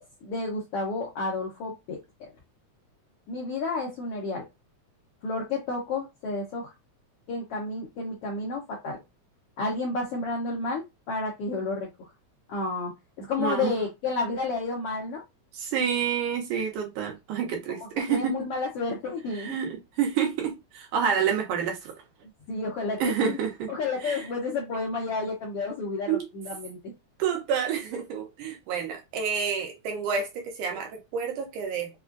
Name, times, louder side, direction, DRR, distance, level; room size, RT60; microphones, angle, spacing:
voice 1, 0.0-2.3 3.3-4.4 5.2-6.7 7.3-9.0 9.6-11.9 12.5-12.9 13.2-15.2 17.8-19.6 22.5-23.4 23.7-26.9, left 3 dB, 75° left, 1.4 m, -31 dB
voice 2, 13.4-13.7 15.5-18.3 19.4-21.9 23.0-23.7 24.0-24.3 26.1-26.3 27.2-31.9, right 7 dB, 80° right, 2.5 m, -28 dB
5.4 x 2.3 x 2.3 m
omnidirectional pair, 3.6 m